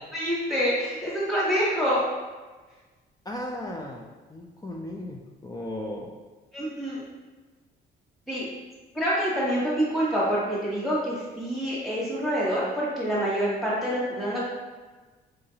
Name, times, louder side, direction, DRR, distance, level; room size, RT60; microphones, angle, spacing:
voice 1, 0.1-2.0 6.5-7.0 8.3-8.5 8.9-14.5, equal, ahead, -8 dB, 1.3 m, -26 dB
voice 2, 3.3-6.2, left 1 dB, 20° left, -1 dB, 0.4 m, -36 dB
4.7 x 2.5 x 2.7 m, 1.3 s
cardioid pair, 90°, 20 cm